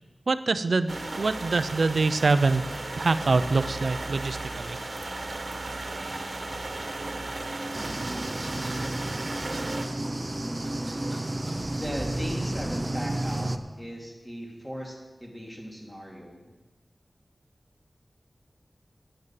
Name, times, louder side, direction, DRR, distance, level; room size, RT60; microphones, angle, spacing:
voice 1, 0.3-2.6 3.0-4.8, right 3 dB, 75° right, 12 dB, 0.6 m, -25 dB
sound 1, 0.9-9.9, right 2 dB, 60° right, 1.4 m, -35 dB
sound 2, 7.7-13.6, right 1 dB, 30° right, 0.8 m, -31 dB
voice 2, 11.7-16.5, equal, 10° left, -1 dB, 3.3 m, -38 dB
9.5 x 9.0 x 7.5 m, 1.3 s
wide cardioid pair, 50°, 0 cm